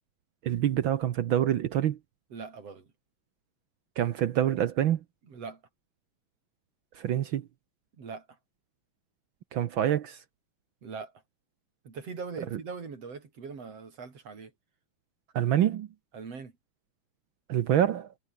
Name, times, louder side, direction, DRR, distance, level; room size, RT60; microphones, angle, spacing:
voice 1, 0.4-2.0 4.0-5.0 6.9-7.5 9.5-10.2 12.5-12.6 15.3-15.9 17.5-18.1, right 11 dB, 70° right, 1.1 m, -26 dB
voice 2, 2.3-2.9 5.3-5.6 8.0-8.3 10.8-11.1 11.8-14.5 16.1-16.5, right 5 dB, 55° right, 4.7 m, -41 dB
omnidirectional pair, 3.3 m